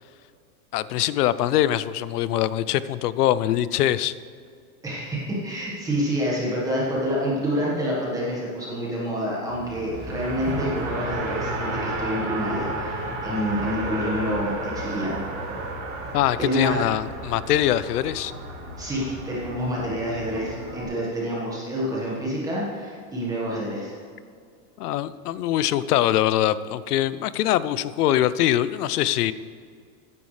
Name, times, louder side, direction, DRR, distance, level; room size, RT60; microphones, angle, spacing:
voice 1, 0.7-4.1 16.1-18.3 24.8-29.3, left 12 dB, 85° left, 16 dB, 0.7 m, -23 dB
voice 2, 4.8-15.2 16.4-16.8 18.8-24.0, equal, 10° right, -5 dB, 1.4 m, -27 dB
Race car auto racing, 9.5-20.8, right 2 dB, 55° right, 3.0 m, -32 dB
14.5 x 9.9 x 3.3 m, 2.2 s
supercardioid pair, 180°, 45 cm